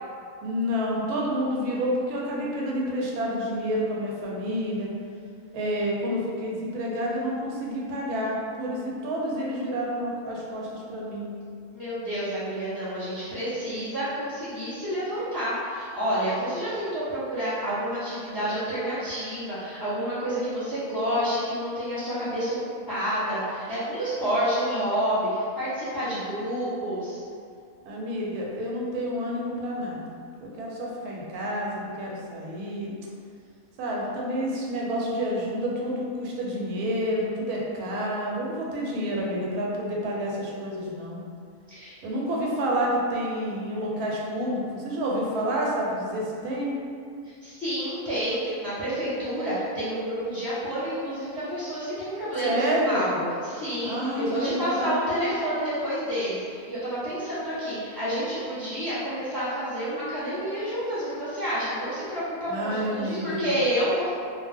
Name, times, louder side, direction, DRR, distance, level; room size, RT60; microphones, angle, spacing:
voice 1, 0.4-4.9 5.5-11.3 27.8-30.0 30.4-32.9 33.8-41.2 42.0-46.7 52.4-53.1 53.8-55.0 62.5-63.6, equal, 90° right, -3 dB, 1.1 m, -29 dB
voice 2, 11.7-22.6 22.9-27.2 41.7-42.0 47.2-53.1 53.4-64.1, equal, 20° left, -13 dB, 0.7 m, -29 dB
2.4 x 2.1 x 3.3 m, 2.3 s
omnidirectional pair, 1.6 m